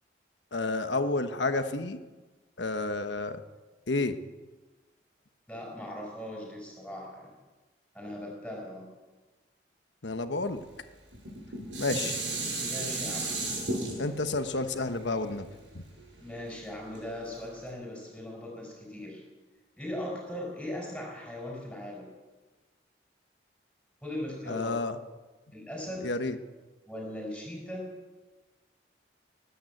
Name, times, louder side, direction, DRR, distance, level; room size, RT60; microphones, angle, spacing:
voice 1, 0.5-2.0 2.6-3.4 3.9-4.2 10.0-10.6 11.8-12.2 14.0-15.5 24.5-25.0 26.0-26.4, left 2 dB, 80° left, 8 dB, 1.2 m, -30 dB
voice 2, 5.5-7.4 7.9-8.9 12.7-13.3 16.2-19.2 19.8-22.1 24.0-24.7 25.5-26.1 26.9-27.9, left 1 dB, 5° left, -2 dB, 4.5 m, -39 dB
Dishes pots and pans, 11.1-16.4 16.9-17.0, right 2 dB, 85° right, 7.6 m, -34 dB
19.5 x 9.3 x 7.8 m, 1.2 s
head